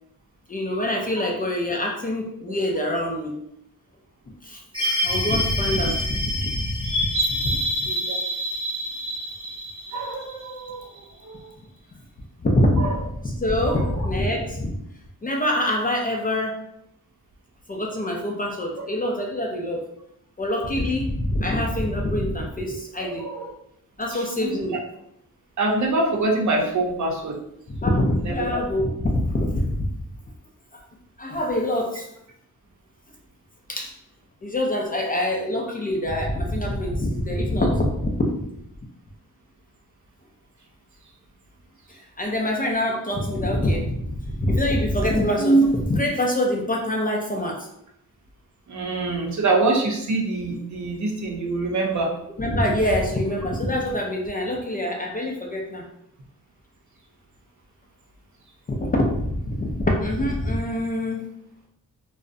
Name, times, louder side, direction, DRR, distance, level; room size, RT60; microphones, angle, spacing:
voice 1, 0.5-3.4 4.4-7.6 12.4-14.8 15.2-16.6 17.7-19.9 20.4-23.2 24.0-24.8 27.7-29.9 30.7-30.8 31.2-32.1 33.7-33.9 34.4-38.4 41.9-47.7 52.4-55.8 58.7-61.3, left 1 dB, 25° left, 0 dB, 0.3 m, -24 dB
sound 1, 4.7-11.0, equal, 15° right, 0.9 m, -27 dB
voice 2, 7.9-8.2 9.9-10.9 11.2-11.4 12.8-13.0 13.7-14.1 23.0-23.5 24.4-24.6 25.6-27.4 28.2-28.5 48.7-52.1, right 2 dB, 55° right, 0 dB, 0.6 m, -25 dB
2.4 x 2.0 x 2.5 m, 0.76 s
wide cardioid pair, 95°, 34 cm